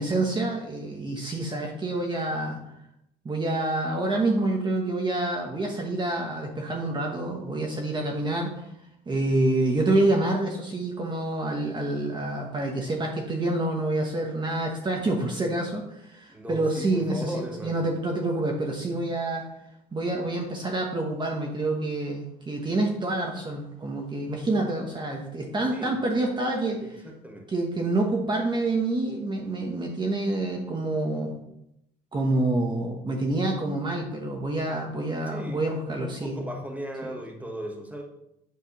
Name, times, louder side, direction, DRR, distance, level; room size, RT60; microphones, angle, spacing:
voice 1, 0.0-2.6 3.2-8.7 9.1-17.3 17.6-19.5 19.9-27.0 27.5-31.4 32.1-36.4 37.0-37.2, right 2 dB, 25° right, 1 dB, 1.2 m, -27 dB
voice 2, 16.3-17.8 25.7-25.9 26.8-27.5 35.3-38.0, equal, 10° right, 2 dB, 1.3 m, -37 dB
8.5 x 3.4 x 5.8 m, 0.82 s
cardioid pair, 110°, 17 cm